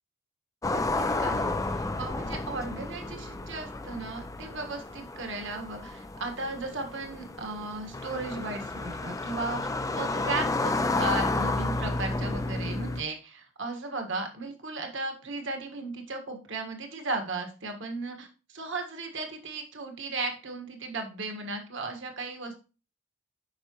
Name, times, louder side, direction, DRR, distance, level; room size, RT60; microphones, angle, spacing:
sound 1, 0.6-13.0, left 2 dB, 15° left, 0.3 m, -31 dB
voice 1, 0.6-9.6 9.9-22.6, right 3 dB, 55° right, 5 dB, 1.5 m, -36 dB
8.9 x 5.7 x 3.0 m, 0.34 s
head